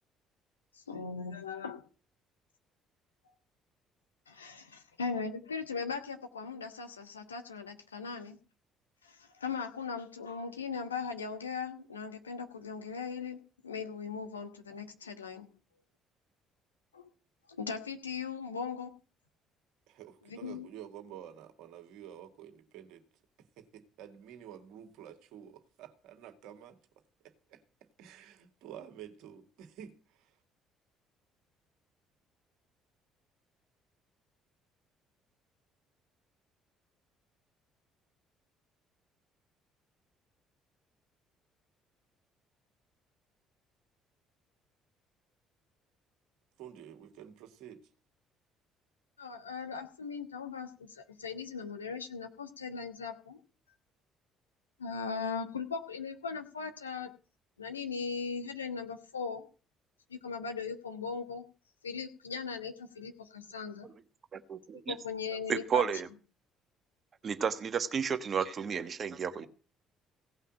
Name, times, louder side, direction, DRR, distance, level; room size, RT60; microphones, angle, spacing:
voice 1, 0.7-1.8 4.3-8.4 9.0-15.5 16.9-17.1 17.5-18.9 20.3-20.7 49.2-53.4 54.8-57.1 57.6-59.4 60.1-61.4 61.8-63.9 64.9-65.9, left 5 dB, 85° left, 1.3 m, -39 dB
voice 2, 19.9-23.0 23.6-26.8 27.2-27.6 28.0-30.3 46.6-47.8, right 10 dB, 60° right, 2.0 m, -50 dB
voice 3, 64.3-64.9 65.5-66.1 67.2-69.5, right 7 dB, 40° right, 1.3 m, -32 dB
17.0 x 5.6 x 8.8 m
figure-of-eight pair, 50°, 0 cm